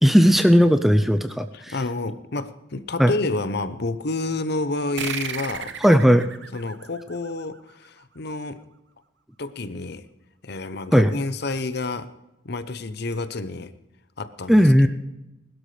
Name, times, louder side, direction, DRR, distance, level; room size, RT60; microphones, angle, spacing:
voice 1, 0.0-1.7 3.0-3.1 5.8-6.3 10.9-11.1 14.5-14.9, equal, ahead, 8 dB, 0.5 m, -16 dB
voice 2, 1.5-5.8 6.5-8.6 9.4-10.0 10.4-12.1 12.4-13.7 14.2-14.9, left 2 dB, 50° left, 12 dB, 0.8 m, -29 dB
sound 1, 5.0-8.0, right 7 dB, 60° right, 0.9 m, -35 dB
20.5 x 12.5 x 3.3 m, 0.93 s
head